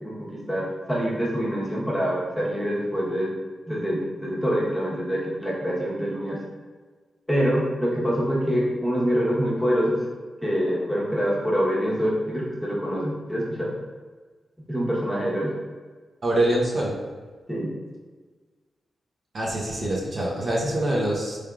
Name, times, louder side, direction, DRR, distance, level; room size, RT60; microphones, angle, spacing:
voice 1, 0.0-3.3 3.7-6.4 7.3-10.0 10.4-13.7 14.7-15.5 17.5-17.7, equal, 5° left, -6 dB, 1.0 m, -25 dB
voice 2, 16.2-17.0 19.3-21.4, right 1 dB, 60° right, -5 dB, 0.9 m, -24 dB
3.4 x 3.2 x 2.4 m, 1.4 s
cardioid pair, 60°, 0 cm